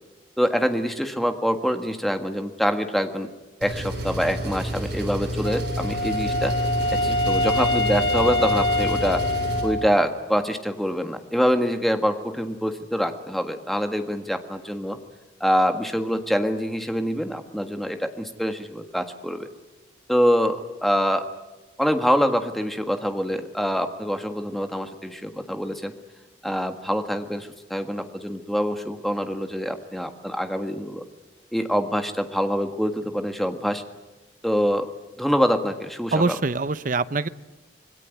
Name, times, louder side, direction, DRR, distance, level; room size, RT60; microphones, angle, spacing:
voice 1, 0.4-3.3 3.6-6.5 6.9-9.2 9.6-15.0 15.4-19.5 20.1-21.3 21.8-25.9 26.4-31.0 31.5-33.8 34.4-34.9 35.2-36.3, equal, ahead, 6 dB, 1.6 m, -25 dB
Engine, 3.6-9.6, equal, 75° right, 7.8 m, -29 dB
Wind instrument woodwind instrument, 5.4-10.2, left 1 dB, 60° left, 2.3 m, -25 dB
voice 2, 36.1-37.3, right 3 dB, 45° right, 14 dB, 0.8 m, -24 dB
26.0 x 20.5 x 9.4 m, 1.1 s
head